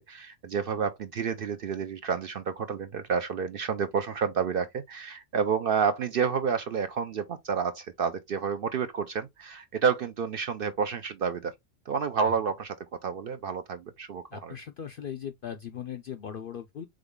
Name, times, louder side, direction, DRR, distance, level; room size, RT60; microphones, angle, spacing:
voice 1, 0.1-11.5 11.9-12.8 13.0-14.5, right 6 dB, 60° right, 0.6 m, -29 dB
voice 2, 14.3-16.9, left 8 dB, 65° left, 0.5 m, -39 dB
3.9 x 3.8 x 3.6 m
omnidirectional pair, 1.3 m